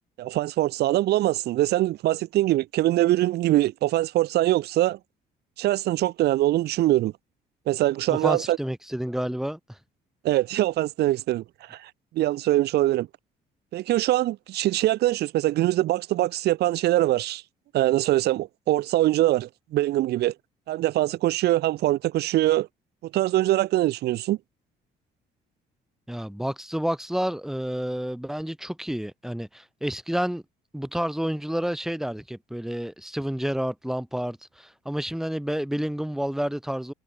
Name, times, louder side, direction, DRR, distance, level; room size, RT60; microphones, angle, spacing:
voice 1, 0.2-5.0 5.6-7.1 7.7-8.6 10.2-11.4 11.7-11.9 12.1-13.1 13.7-17.4 17.7-20.3 20.7-22.7 23.1-24.4, right 15 dB, 75° right, 3.0 m, -23 dB
voice 2, 8.1-9.6 26.1-30.4 30.7-36.9, equal, ahead, 7.5 m, -29 dB
cardioid pair, 110°, 17 cm